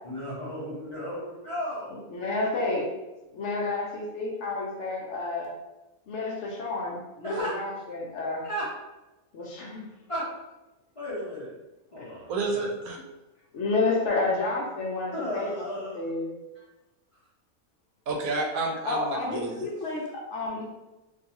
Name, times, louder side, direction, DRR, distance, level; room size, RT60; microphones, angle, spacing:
voice 1, 0.0-2.0 7.2-7.6 8.4-8.7 10.1-10.3 11.0-11.5 11.9-12.7 15.1-16.1 16.5-16.6, equal, 35° left, -9 dB, 0.6 m, -34 dB
voice 2, 2.1-2.9 3.3-5.5 6.1-8.4 9.3-9.8 13.5-15.5 15.9-16.3 18.8-20.6, left 3 dB, 65° left, -3 dB, 0.8 m, -30 dB
voice 3, 12.3-13.0 18.1-19.7, right 3 dB, 80° right, 1 dB, 1.0 m, -30 dB
2.5 x 2.3 x 2.8 m, 1.0 s
omnidirectional pair, 1.5 m